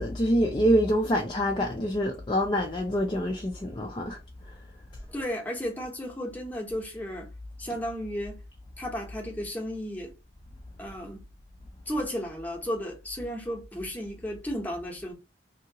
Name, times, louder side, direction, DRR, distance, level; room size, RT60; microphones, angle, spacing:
voice 1, 0.0-4.2 4.5-4.6, equal, 25° left, 0.4 m, -26 dB
voice 2, 5.1-7.3 7.6-8.4 8.8-10.1 10.8-11.2 11.9-15.1, equal, 10° left, 0.8 m, -34 dB
2.8 x 2.7 x 2.7 m
head